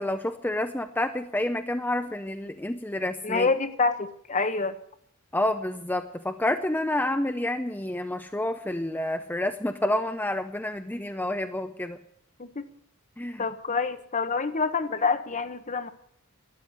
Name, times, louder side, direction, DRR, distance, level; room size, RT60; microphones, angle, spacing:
voice 1, 0.0-3.5 5.3-12.0 13.2-13.4, left 1 dB, 10° left, 7 dB, 0.6 m, -29 dB
voice 2, 3.2-4.8 12.4-12.7 13.4-15.9, left 4 dB, 35° left, 11 dB, 1.0 m, -27 dB
12.5 x 9.9 x 9.9 m, 0.68 s
head